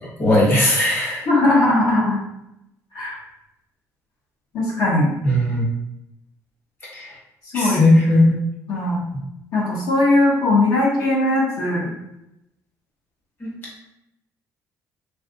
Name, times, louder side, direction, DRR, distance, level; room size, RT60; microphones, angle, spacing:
voice 1, 0.2-1.3 5.2-5.6 6.9-7.1 7.5-8.3 13.4-13.5, left 1 dB, 35° left, -5 dB, 1.1 m, -17 dB
voice 2, 1.3-2.2 2.9-3.2 4.5-5.1 7.5-8.0 8.7-9.0 9.5-11.9, left 2 dB, 70° left, -5 dB, 0.9 m, -19 dB
3.3 x 2.4 x 2.6 m, 0.84 s
cardioid pair, 125°, 7 cm